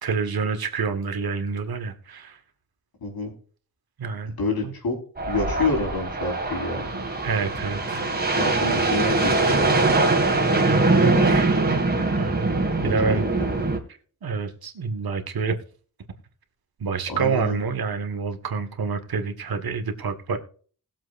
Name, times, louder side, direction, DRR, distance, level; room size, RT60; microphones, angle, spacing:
voice 1, 0.0-2.4 4.0-4.3 4.6-4.7 6.9-8.0 10.7-11.5 12.1-12.5 12.8-13.3 14.2-15.5 16.8-20.4, right 5 dB, 85° right, 1.8 m, -28 dB
voice 2, 3.0-3.3 4.4-5.0 5.3-6.9 8.3-9.8 12.8-13.7 17.1-17.6, left 2 dB, 85° left, 4.9 m, -28 dB
sound 1, 5.2-13.8, right 3 dB, 25° right, 2.2 m, -22 dB
20.0 x 7.6 x 2.6 m
wide cardioid pair, 150°, 36 cm